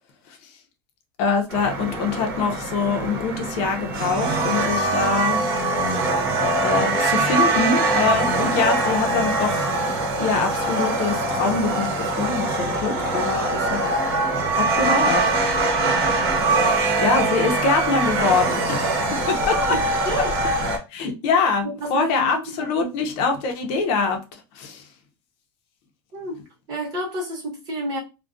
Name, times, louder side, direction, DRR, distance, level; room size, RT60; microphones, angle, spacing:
voice 1, 1.2-5.4 6.6-9.6 10.2-13.8 14.6-15.4 17.0-19.6 20.9-24.8, left 4 dB, 45° left, 0.6 m, -24 dB
sound 1, 1.5-20.8, right 2 dB, 75° right, 0.9 m, -23 dB
voice 2, 19.4-20.3 21.6-22.9 26.1-26.4 26.7-28.0, equal, 30° right, 0.9 m, -30 dB
2.3 x 2.2 x 2.4 m
supercardioid pair, 165°, 13 cm